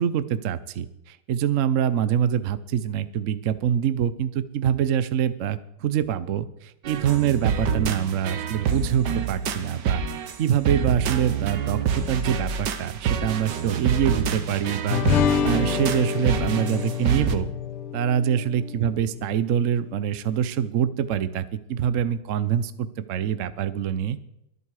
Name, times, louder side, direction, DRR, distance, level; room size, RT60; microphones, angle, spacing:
voice 1, 0.0-10.0 10.4-15.0 15.4-17.5 17.9-24.2, right 9 dB, 85° right, 14 dB, 0.6 m, -25 dB
sound 1, 6.8-17.4, right 6 dB, 60° right, 1.4 m, -27 dB
sound 2, 14.9-19.6, left 8 dB, 90° left, 1.7 m, -27 dB
23.0 x 8.3 x 4.9 m, 0.81 s
omnidirectional pair, 2.4 m